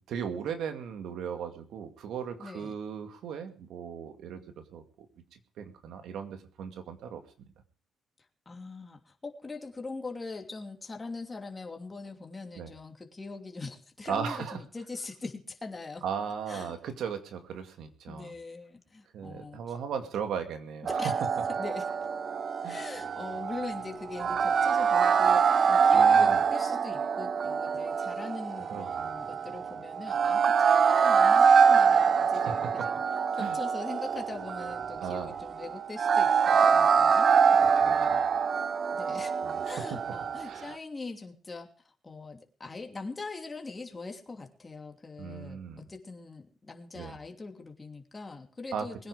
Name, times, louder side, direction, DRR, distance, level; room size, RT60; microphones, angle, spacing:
voice 1, 0.0-5.1 5.3-7.5 12.6-12.7 14.1-14.6 16.0-18.3 19.1-20.9 22.6-22.8 25.9-26.4 28.7-29.1 32.5-32.9 33.4-33.6 35.0-35.3 37.8-38.3 39.4-39.8 40.4-40.7 45.2-45.8 46.9-47.2 48.7-49.1, right 7 dB, 75° right, 8 dB, 2.2 m, -37 dB
voice 2, 2.4-2.7 8.5-16.0 16.5-16.8 18.1-19.6 20.9-21.1 21.6-21.9 22.6-33.0 33.3-38.1 38.9-39.3 39.6-41.7 42.0-49.1, left 3 dB, 25° left, 3 dB, 2.8 m, -42 dB
sound 1, 20.9-40.7, right 6 dB, 50° right, 0.8 m, -25 dB
21.5 x 9.9 x 4.9 m, 0.42 s
cardioid pair, 90°, 0 cm